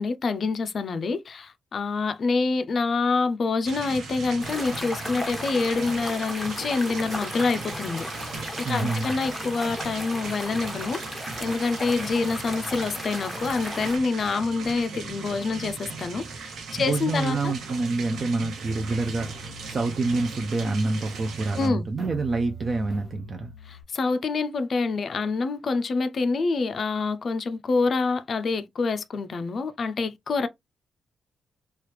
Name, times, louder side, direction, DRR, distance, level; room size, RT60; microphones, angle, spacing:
voice 1, 0.0-8.1 8.6-17.5 21.6-21.8 23.7-30.5, left 4 dB, 45° left, 0.4 m, -26 dB
sound 1, 3.6-21.7, right 4 dB, 80° right, 0.9 m, -38 dB
sound 2, 4.4-14.0, left 1 dB, 5° left, 0.6 m, -36 dB
voice 2, 8.6-9.1 16.8-23.5, right 3 dB, 35° right, 0.4 m, -27 dB
sound 3, 18.6-23.8, right 4 dB, 20° right, 0.9 m, -43 dB
3.2 x 2.3 x 3.2 m
cardioid pair, 135°, 0 cm